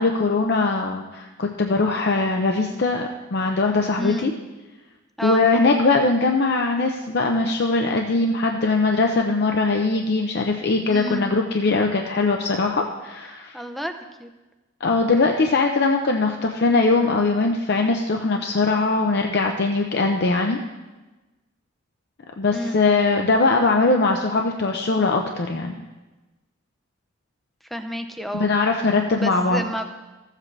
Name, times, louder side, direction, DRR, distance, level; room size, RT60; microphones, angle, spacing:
voice 1, 0.0-4.3 5.2-13.5 14.8-20.6 22.4-25.7 28.3-29.7, left 3 dB, 55° left, 3 dB, 0.6 m, -21 dB
voice 2, 4.0-4.3 5.2-5.5 10.9-11.3 13.5-14.3 22.5-22.8 27.7-28.5 29.2-29.8, equal, ahead, 6 dB, 0.6 m, -30 dB
14.5 x 7.4 x 3.3 m, 1.1 s
head